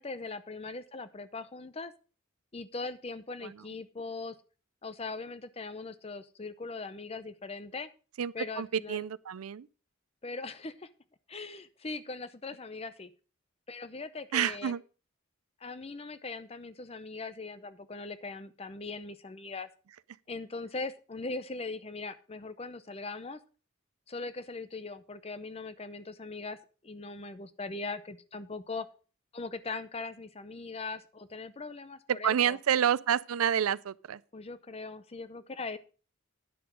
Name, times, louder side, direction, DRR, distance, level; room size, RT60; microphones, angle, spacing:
voice 1, 0.0-1.9 2.5-4.4 4.8-7.9 8.3-9.0 10.2-10.9 11.3-13.1 13.7-14.7 15.6-19.7 20.3-23.4 24.1-28.9 29.3-32.6 34.3-35.8, left 3 dB, 30° left, 0.6 m, -40 dB
voice 2, 8.2-9.7 14.3-14.8 32.2-34.2, right 9 dB, 90° right, 0.4 m, -29 dB
10.0 x 6.9 x 5.1 m
head